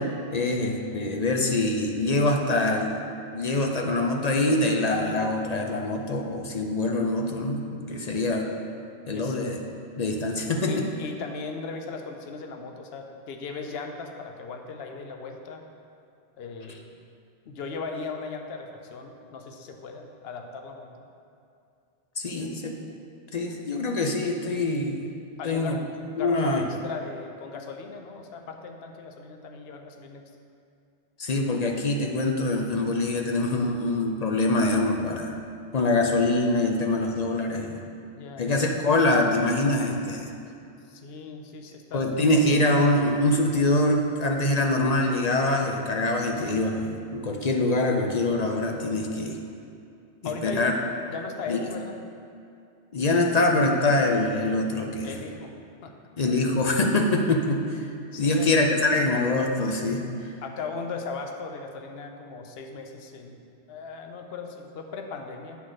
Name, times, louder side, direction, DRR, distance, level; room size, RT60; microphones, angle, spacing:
voice 1, 0.0-3.0 3.3-8.5 9.1-9.6 10.0-10.9 22.2-22.8 23.3-25.1 25.4-25.8 26.2-26.6 31.2-35.3 35.7-37.8 38.4-40.3 41.9-49.4 50.4-50.7 51.5-51.7 52.9-55.1 56.2-57.9 58.2-60.1, left 2 dB, 45° left, 2 dB, 0.6 m, -24 dB
voice 2, 10.7-15.7 16.4-16.8 17.5-20.9 22.4-22.5 25.4-25.8 26.2-30.2 38.1-38.5 40.9-42.1 50.2-50.6 51.1-52.0 55.0-55.5 55.8-55.9 58.1-58.5 60.4-63.4 63.7-65.6, left 4 dB, 70° left, 4 dB, 0.9 m, -37 dB
8.3 x 4.0 x 6.2 m, 2.5 s
omnidirectional pair, 1.1 m